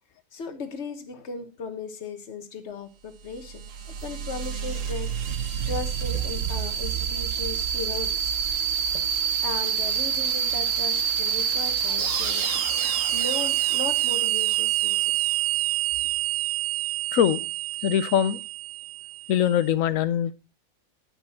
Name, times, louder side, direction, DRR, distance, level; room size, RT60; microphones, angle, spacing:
voice 1, 0.3-3.6 4.0-8.3 8.9-9.1 9.4-15.3, left 5 dB, 55° left, 1.5 m, -37 dB
sound 1, 3.2-19.5, right 9 dB, 70° right, 1.4 m, -27 dB
voice 2, 17.1-17.4 17.8-18.4 19.3-20.3, left 10 dB, 75° left, 1.1 m, -22 dB
11.0 x 7.1 x 4.2 m
omnidirectional pair, 1.4 m